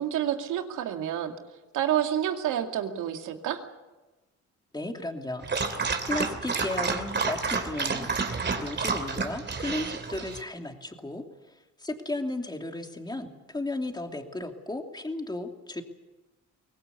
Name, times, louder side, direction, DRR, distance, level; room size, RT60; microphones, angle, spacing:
voice 1, 0.0-1.3 1.7-3.6, right 10 dB, 85° right, 5 dB, 2.3 m, -28 dB
voice 2, 4.7-8.1 8.6-11.2 11.8-15.8, left 2 dB, 15° left, 4 dB, 2.8 m, -34 dB
Dog, 5.4-10.4, right 4 dB, 35° right, 3.1 m, -30 dB
23.5 x 18.5 x 8.3 m, 1.1 s
cardioid pair, 90°, 30 cm